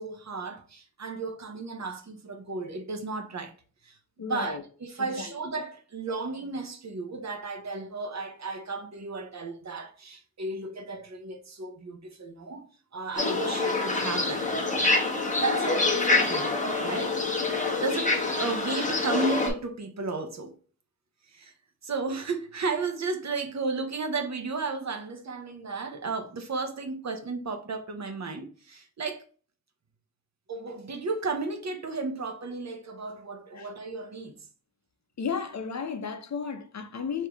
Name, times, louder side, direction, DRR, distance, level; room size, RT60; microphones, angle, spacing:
voice 1, 0.0-3.5 3.8-4.0 4.3-12.7 12.9-14.5 15.4-16.6 16.8-17.2 17.8-20.6 21.3-21.5 21.8-29.2 30.5-34.3, right 3 dB, 50° right, 0.8 m, -34 dB
voice 2, 4.2-4.6 5.0-5.3 33.5-33.7 35.2-37.3, left 6 dB, 50° left, 0.7 m, -33 dB
sound 1, 13.2-19.5, left 3 dB, 20° left, 1.1 m, -26 dB
4.8 x 2.8 x 3.5 m
wide cardioid pair, 120°, 36 cm